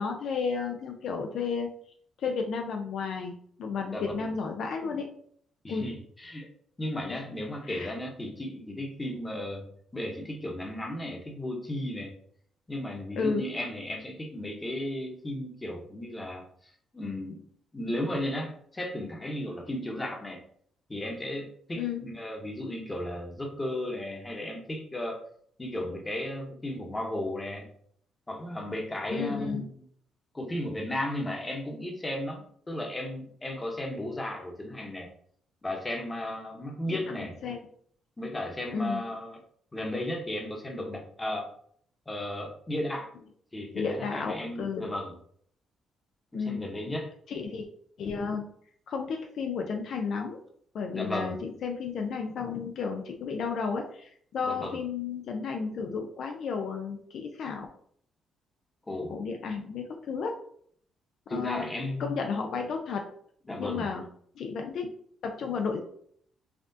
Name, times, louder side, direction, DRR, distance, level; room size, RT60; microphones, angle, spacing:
voice 1, 0.0-1.7 2.2-3.3 3.6-5.1 5.7-5.9 7.7-7.9 13.2-13.4 21.8-22.0 29.1-29.6 36.9-37.1 37.4-37.6 38.7-39.0 43.7-44.9 46.3-46.6 47.3-47.7 48.0-48.5 48.9-50.4 50.7-57.7 59.1-60.4 61.3-61.7 62.0-63.1 63.6-64.0 64.4-64.9 65.2-65.8, left 5 dB, 65° left, 3 dB, 0.5 m, -32 dB
voice 2, 3.9-4.3 5.6-6.5 6.8-9.7 9.9-12.1 12.7-16.4 16.9-17.4 17.7-20.4 20.9-25.2 25.6-27.7 28.3-29.7 30.3-35.1 35.6-37.3 38.2-39.4 39.7-41.5 42.1-43.1 43.5-45.1 46.3-47.1 50.9-51.4 54.4-54.8 58.9-59.1 61.3-62.2 63.5-63.9, left 1 dB, 20° left, 1 dB, 1.0 m, -35 dB
5.7 x 2.4 x 2.7 m, 0.62 s
cardioid pair, 90°, 0 cm